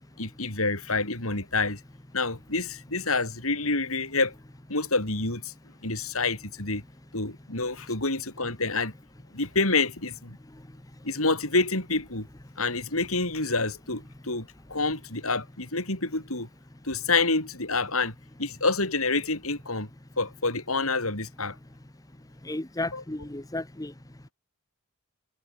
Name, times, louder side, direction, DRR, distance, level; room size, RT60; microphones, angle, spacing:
voice 1, 0.2-1.8 2.1-4.3 4.7-5.5 5.8-6.8 7.1-8.9 9.3-10.4 11.0-12.3 12.6-16.5 16.8-18.1 18.4-19.9 20.2-21.5 22.9-23.0, left 3 dB, 75° left, 6.7 m, -27 dB
voice 2, 22.4-23.9, left 2 dB, 15° left, 1.0 m, -33 dB
head